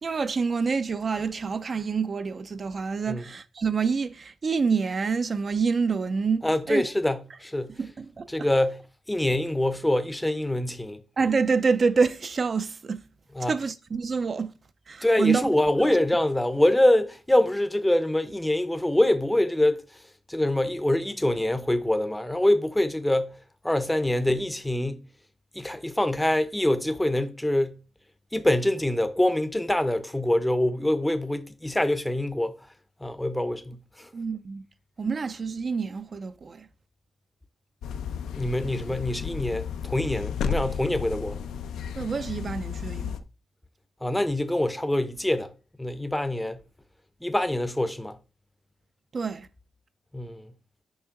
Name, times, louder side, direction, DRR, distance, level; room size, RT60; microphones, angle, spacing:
voice 1, 0.0-6.9 7.8-8.3 11.2-13.0 13.5-14.5 14.9-15.5 34.1-34.6 35.0-36.7 41.9-43.1 49.1-49.5, right 5 dB, 30° right, 0.4 m, -27 dB
voice 2, 6.4-7.7 8.3-8.8 9.1-11.0 13.4-13.5 15.0-19.8 20.3-23.4 23.6-25.0 25.5-27.8 28.3-32.6 33.0-34.1 38.3-41.4 44.0-45.5 45.8-46.6 47.2-48.2 50.1-50.5, left 1 dB, 5° left, 0.7 m, -25 dB
sound 1, 37.8-43.2, left 7 dB, 80° left, 0.7 m, -33 dB
7.0 x 5.4 x 3.7 m
cardioid pair, 145°, 0 cm